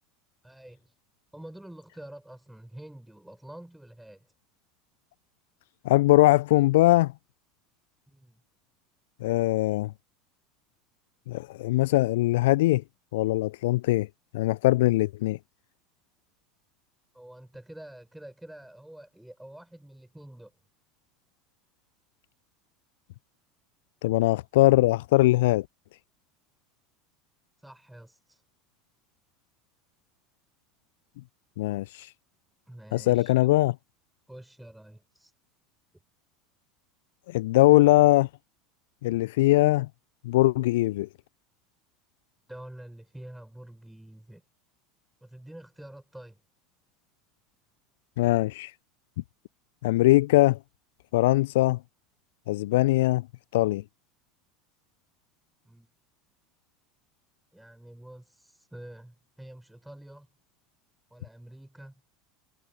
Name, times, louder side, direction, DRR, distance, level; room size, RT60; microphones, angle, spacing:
voice 1, 0.4-0.9 1.3-4.3 8.1-8.4 17.1-20.5 27.6-28.4 32.7-33.5 34.3-35.3 42.5-44.4 45.2-46.4 55.6-55.9 57.5-60.3 61.1-62.0, right 1 dB, 5° right, 6.6 m, -47 dB
voice 2, 5.8-7.1 9.2-9.9 11.3-12.8 13.1-14.1 14.3-15.4 24.0-25.7 31.6-32.1 32.9-33.7 37.3-38.3 39.0-39.9 40.2-41.1 48.2-48.7 49.8-50.6 51.1-51.8 52.5-53.3 53.5-53.8, left 18 dB, 65° left, 0.4 m, -21 dB
figure-of-eight pair, 80°, 0 cm